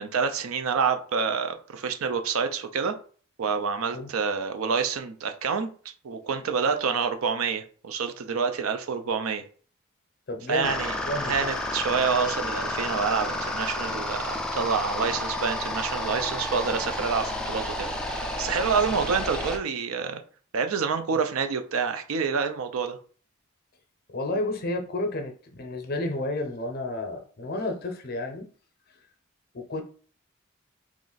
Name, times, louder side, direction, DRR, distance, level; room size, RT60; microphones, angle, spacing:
voice 1, 0.0-2.9 3.4-5.7 6.0-9.4 10.5-10.9 11.3-20.2 20.5-23.0, right 5 dB, 75° right, 8 dB, 0.5 m, -27 dB
voice 2, 10.3-10.8 11.0-11.5 24.1-28.5 29.5-29.8, left 2 dB, 45° left, 5 dB, 0.6 m, -31 dB
sound 1, 10.6-19.6, left 1 dB, 5° left, 0.3 m, -31 dB
3.0 x 2.5 x 3.9 m, 0.43 s
head